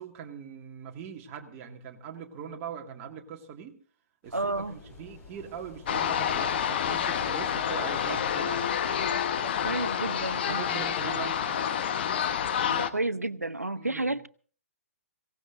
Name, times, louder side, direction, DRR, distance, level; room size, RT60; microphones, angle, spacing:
voice 1, 0.0-3.8 4.2-4.4 4.7-8.7 9.6-9.7 10.3-11.6 13.7-14.1, right 7 dB, 25° right, 3 dB, 2.1 m, -41 dB
sound 1, 4.2-10.0, left 2 dB, 20° left, 3.8 m, -51 dB
voice 2, 4.3-4.8 9.4-10.6 12.6-14.3, right 2 dB, 85° right, 15 dB, 0.8 m, -31 dB
sound 2, 5.9-12.9, left 8 dB, 40° left, 1.1 m, -28 dB
23.5 x 17.5 x 2.6 m, 0.43 s
figure-of-eight pair, 125°, 8 cm